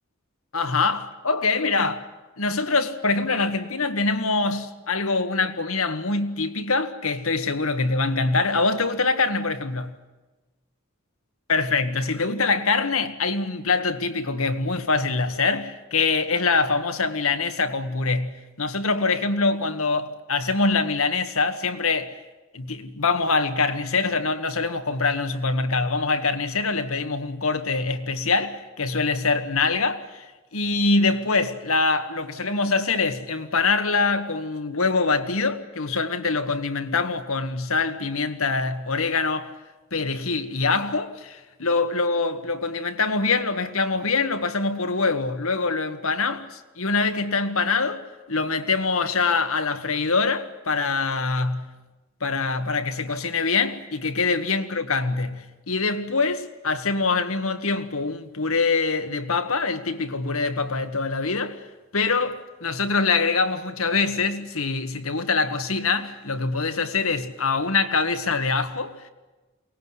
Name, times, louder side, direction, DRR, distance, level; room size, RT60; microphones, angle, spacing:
voice 1, 0.5-2.1 2.4-10.0 11.5-22.2 22.5-30.3 30.5-39.5 39.9-51.7 52.2-61.6 61.9-69.1, left 4 dB, 85° left, 1.8 m, -24 dB
23.0 x 19.5 x 9.8 m
head